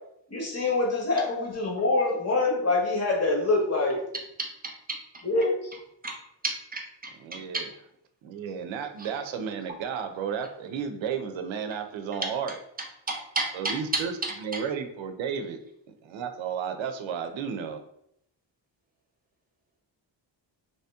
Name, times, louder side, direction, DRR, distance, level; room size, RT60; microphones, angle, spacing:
voice 1, 0.3-4.0 5.2-5.6, left 2 dB, 35° left, 0 dB, 1.0 m, -25 dB
voice 2, 6.4-7.1 7.5-7.6 9.0-9.1 13.1-13.8 14.5-14.6, right 3 dB, 20° right, 1 dB, 0.5 m, -31 dB
voice 3, 7.2-7.7 8.2-12.6 13.5-14.1 14.4-15.6 16.0-17.8, right 7 dB, 80° right, 7 dB, 0.6 m, -33 dB
3.1 x 2.8 x 3.4 m, 0.75 s
wide cardioid pair, 140°, 45 cm